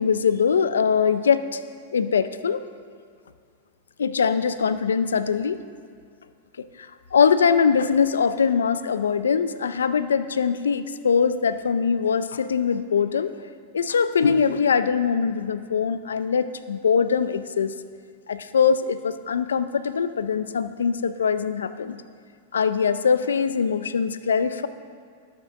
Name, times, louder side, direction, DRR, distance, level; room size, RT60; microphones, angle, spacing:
voice 1, 0.0-1.6 1.9-2.6 4.0-5.6 7.1-13.3 13.7-17.7 18.3-22.0 22.5-24.7, left 6 dB, 90° left, 12 dB, 0.5 m, -22 dB
12.5 x 6.0 x 6.3 m, 2.2 s
hypercardioid pair, 115°, 0 cm